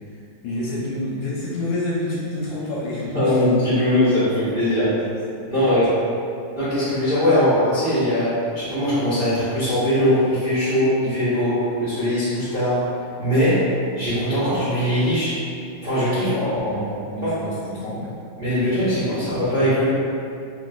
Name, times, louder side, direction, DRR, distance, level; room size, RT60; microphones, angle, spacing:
voice 1, 0.1-3.4 4.6-4.9 5.3-5.8 16.1-18.2, left 1 dB, 75° left, -6 dB, 1.2 m, -29 dB
voice 2, 3.1-4.9 5.5-5.9 6.5-12.8 13.2-15.4 15.8-16.3 17.2-17.4 18.4-19.9, left 1 dB, 75° right, -13 dB, 0.5 m, -20 dB
2.9 x 2.8 x 2.2 m, 2.5 s
omnidirectional pair, 2.3 m